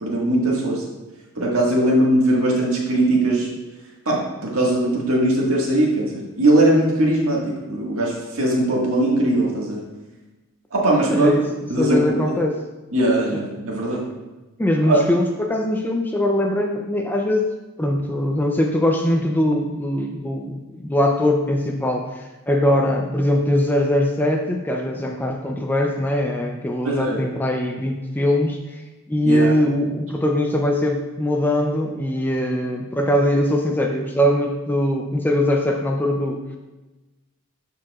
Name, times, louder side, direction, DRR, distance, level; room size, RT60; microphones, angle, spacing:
voice 1, 0.0-0.8 1.4-3.5 4.1-9.8 10.7-11.3 11.7-12.3 12.9-14.1 14.8-15.0 26.8-27.2 29.2-29.5, right 1 dB, 70° right, -3 dB, 1.7 m, -20 dB
voice 2, 11.1-11.5 11.8-12.6 14.6-17.5 17.8-28.8 29.1-36.4, left 1 dB, 10° left, 2 dB, 0.4 m, -21 dB
12.0 x 4.7 x 2.4 m, 1.1 s
head